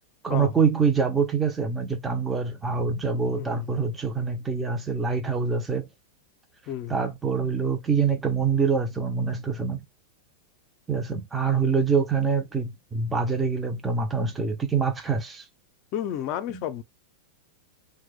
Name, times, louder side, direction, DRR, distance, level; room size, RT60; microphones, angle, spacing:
voice 1, 0.2-5.9 6.9-9.8 10.9-15.4, right 5 dB, 10° right, 0.5 m, -25 dB
voice 2, 3.3-3.8 6.7-7.0 15.9-16.8, left 10 dB, 45° left, 0.5 m, -32 dB
3.0 x 2.2 x 3.4 m
hypercardioid pair, 125°, 0 cm